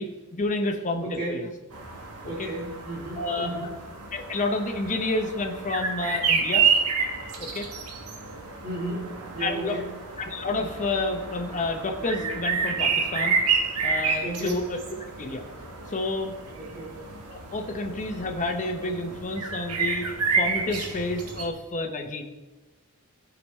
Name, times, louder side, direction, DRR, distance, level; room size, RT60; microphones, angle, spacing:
voice 1, 0.0-1.5 2.4-2.5 3.2-3.7 4.1-6.7 7.4-7.7 9.4-9.8 10.2-13.4 13.8-15.5 15.9-16.3 17.3-20.1 20.3-22.2, left 2 dB, 35° left, 3 dB, 0.8 m, -30 dB
voice 2, 1.0-1.4 2.3-3.7 8.5-9.9 14.2-14.6 16.6-17.0, right 2 dB, 40° right, -3 dB, 1.7 m, -34 dB
sound 1, 1.7-21.5, right 5 dB, 75° right, 1.2 m, -29 dB
14.5 x 5.1 x 3.2 m, 1.1 s
head